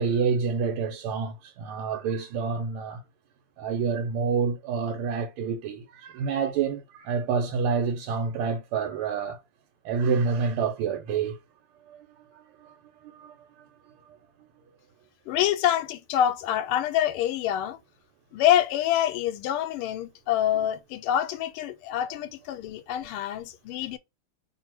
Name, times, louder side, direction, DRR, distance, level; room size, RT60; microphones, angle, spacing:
voice 1, 0.0-3.0 3.6-9.4 9.8-11.4 11.9-12.8 13.0-13.4, right 5 dB, 85° right, 1.5 m, -28 dB
voice 2, 15.3-17.8 18.3-24.0, left 11 dB, 85° left, 1.5 m, -26 dB
3.2 x 2.5 x 4.4 m
omnidirectional pair, 2.4 m